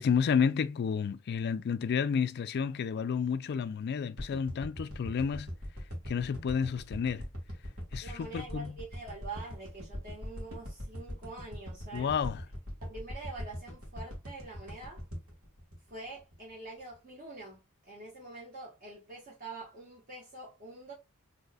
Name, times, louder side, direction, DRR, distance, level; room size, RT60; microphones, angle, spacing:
voice 1, 0.0-5.5 6.1-7.3 7.9-8.7 11.9-12.4, left 6 dB, 50° left, 0.3 m, -30 dB
sound 1, 4.2-16.5 16.9-17.0, equal, 75° right, 1.6 m, -41 dB
voice 2, 8.0-12.1 12.8-15.0 15.9-20.9, right 3 dB, 40° right, 1.2 m, -45 dB
4.0 x 2.8 x 2.2 m
head